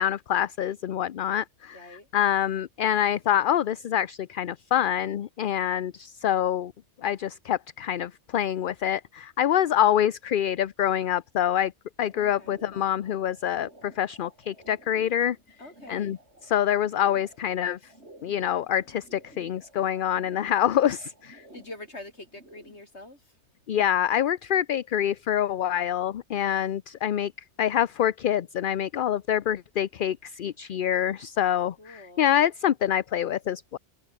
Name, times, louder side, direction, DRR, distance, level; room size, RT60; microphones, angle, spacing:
voice 1, 0.0-6.7 7.0-11.7 12.0-15.4 15.9-16.2 16.4-17.8 18.2-21.4 23.7-27.3 27.6-33.8, left 10 dB, 55° left, 0.7 m, -26 dB
voice 2, 1.7-2.1 12.1-12.5 15.6-16.1 21.5-23.2 31.8-32.4, left 2 dB, 75° left, 6.5 m, -45 dB
sound 1, 12.1-22.9, right 1 dB, 75° right, 7.8 m, -53 dB
omnidirectional pair, 1.1 m